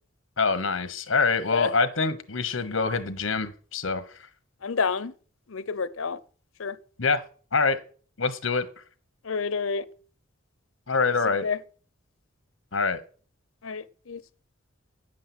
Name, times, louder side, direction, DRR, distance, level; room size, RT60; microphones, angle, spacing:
voice 1, 0.4-4.3 7.0-7.2 7.5-7.8 8.2-8.7 10.9-11.5 12.7-13.0, left 4 dB, 70° left, 1.2 m, -25 dB
voice 2, 4.6-5.1 5.5-6.2 6.6-6.8 9.2-9.8 11.4-11.6 13.6-14.2, left 5 dB, 90° left, 0.7 m, -29 dB
10.0 x 7.6 x 6.1 m
head